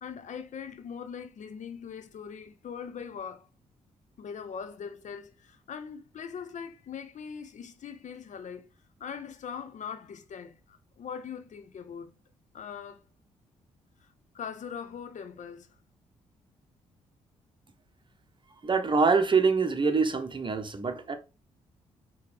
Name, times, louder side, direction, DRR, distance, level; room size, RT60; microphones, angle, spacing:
voice 1, 0.0-3.5 4.2-8.6 9.0-12.1 12.5-13.0 14.0-15.7, left 7 dB, 55° left, 0.7 m, -41 dB
voice 2, 18.6-21.2, right 4 dB, 35° right, 0.9 m, -25 dB
4.9 x 3.1 x 3.3 m
hypercardioid pair, 45°, 15 cm